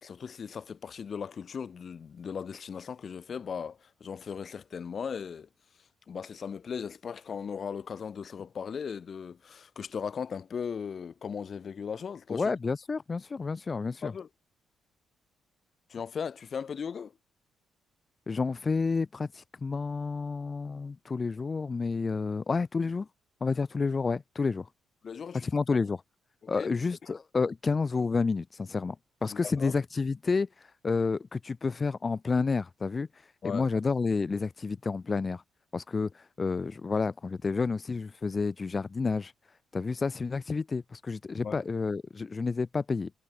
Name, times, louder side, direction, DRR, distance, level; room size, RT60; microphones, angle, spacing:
voice 1, 0.0-5.5 6.1-12.5 14.0-14.3 15.9-17.1 25.0-25.5 26.4-26.7 29.3-29.7 33.4-33.7 41.4-41.6, left 6 dB, 45° left, 2.0 m, -37 dB
voice 2, 12.3-14.1 18.3-23.1 23.4-24.7 25.3-26.0 26.5-29.0 29.2-35.4 35.7-39.3 39.7-43.1, left 4 dB, 30° left, 0.4 m, -30 dB
cardioid pair, 90°, 0 cm